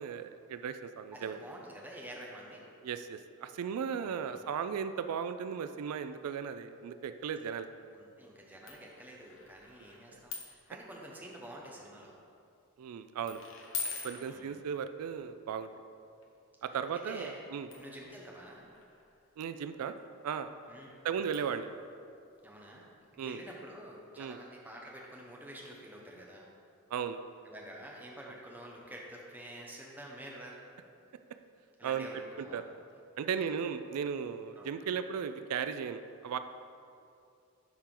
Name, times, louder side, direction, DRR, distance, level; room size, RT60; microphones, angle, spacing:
voice 1, 0.0-1.4 2.8-7.7 12.8-13.4 14.0-15.7 16.6-17.7 19.4-19.9 20.2-20.5 21.0-21.7 23.2-23.4 24.2-24.4 26.9-27.2 31.8-32.1 32.4-32.6 33.2-36.4, right 7 dB, 90° right, 10 dB, 0.3 m, -36 dB
voice 2, 1.1-2.6 4.0-4.4 7.9-12.1 14.1-14.6 17.0-17.4 17.7-18.6 20.7-20.9 22.4-22.8 23.1-26.5 27.4-30.6 31.8-32.7 33.4-33.5 34.6-34.7, right 1 dB, 10° right, -2 dB, 0.8 m, -48 dB
sound 1, 7.1-7.6 8.7-10.7 11.0-11.4 12.1-12.4 13.3-15.2 16.2-16.3 17.7-23.2 23.5-23.6 23.9-24.0, left 5 dB, 65° left, 0.9 m, -45 dB
11.5 x 4.4 x 3.8 m, 2.5 s
head